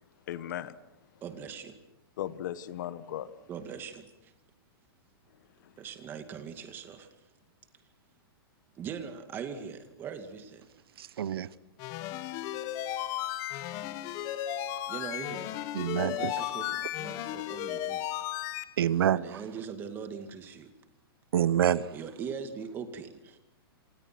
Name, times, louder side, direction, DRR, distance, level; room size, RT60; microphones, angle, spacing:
voice 1, 0.3-0.8 1.1-1.2 2.2-3.5 5.3-5.8, left 11 dB, 50° left, 1.3 m, -38 dB
voice 2, 1.2-1.8 3.5-4.3 5.8-7.1 8.8-10.7 14.9-15.5 16.0-18.0 19.1-20.7 21.9-23.4, right 6 dB, 15° right, 2.2 m, -41 dB
voice 3, 11.0-11.5 15.7-16.3 18.8-19.4 21.3-21.9, right 10 dB, 70° right, 1.0 m, -27 dB
sound 1, 11.8-18.6, left 13 dB, 25° left, 1.1 m, -35 dB
27.5 x 27.0 x 6.1 m
hypercardioid pair, 170°, 13 cm